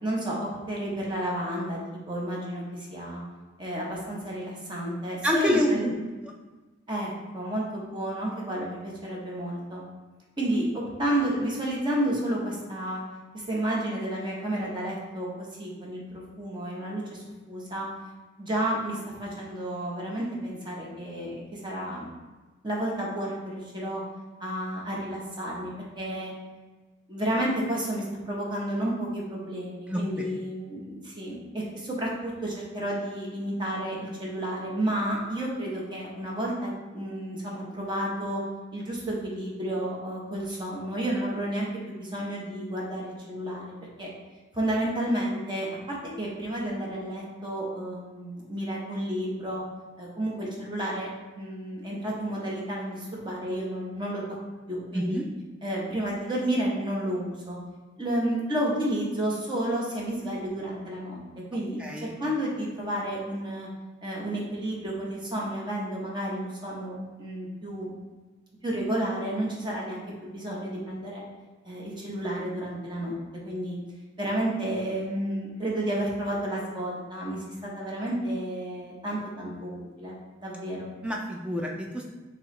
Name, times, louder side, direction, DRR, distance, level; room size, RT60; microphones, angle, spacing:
voice 1, 0.0-1.8 2.1-3.2 3.6-5.9 6.9-9.8 10.4-13.0 13.3-17.9 18.4-22.1 22.6-24.0 24.4-26.3 27.1-38.4 38.7-44.1 44.5-49.6 50.0-51.1 51.4-54.2 54.7-55.2 55.6-57.6 58.0-61.2 61.5-63.7 64.0-67.9 68.6-71.2 71.6-73.2 73.4-73.8 74.2-80.9, right 1 dB, 25° right, -3 dB, 0.9 m, -31 dB
voice 2, 5.2-6.0 29.9-30.3 54.9-55.2 61.8-62.1 81.0-82.0, equal, 5° right, -1 dB, 0.3 m, -27 dB
4.5 x 2.9 x 3.1 m, 1.3 s
head